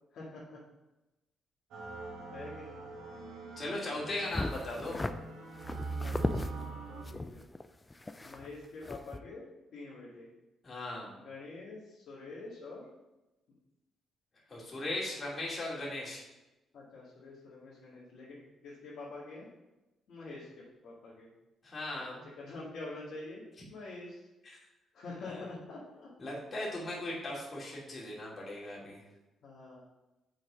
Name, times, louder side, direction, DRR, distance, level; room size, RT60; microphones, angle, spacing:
voice 1, 0.1-0.6 2.3-2.8 6.0-7.4 8.2-10.3 11.2-12.8 16.7-19.5 20.1-21.3 22.0-23.4 23.7-24.2 24.9-26.1 29.4-29.8, left 3 dB, 65° left, -8 dB, 2.3 m, -46 dB
Content warning, 1.7-7.0, right 3 dB, 80° right, 1.8 m, -42 dB
voice 2, 3.6-5.0 10.6-11.1 14.5-16.2 21.6-22.2 25.3-25.4 26.2-29.0, left 1 dB, 35° left, -5 dB, 2.7 m, -38 dB
sound 1, 4.3-5.1 5.6-6.5 7.1-8.6 8.8-9.2, left 2 dB, 15° left, 0.4 m, -36 dB
6.3 x 4.1 x 6.2 m, 1.0 s
cardioid pair, 90°, 0 cm